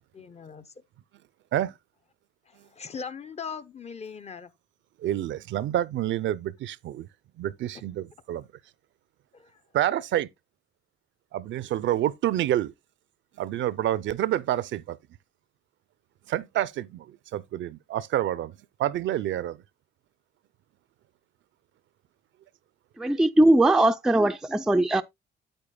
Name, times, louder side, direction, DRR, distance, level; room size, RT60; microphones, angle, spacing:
voice 1, 0.1-0.7 2.5-4.5 7.7-7.8 9.3-9.6, left 6 dB, 30° left, 0.6 m, -40 dB
voice 2, 5.0-7.1 7.4-8.5 9.7-10.3 11.3-12.7 13.4-15.0 16.3-18.5 18.8-19.6, right 12 dB, 70° right, 0.5 m, -28 dB
voice 3, 23.0-25.0, right 1 dB, 5° right, 0.3 m, -20 dB
8.8 x 8.2 x 2.2 m
cardioid pair, 90°, 20 cm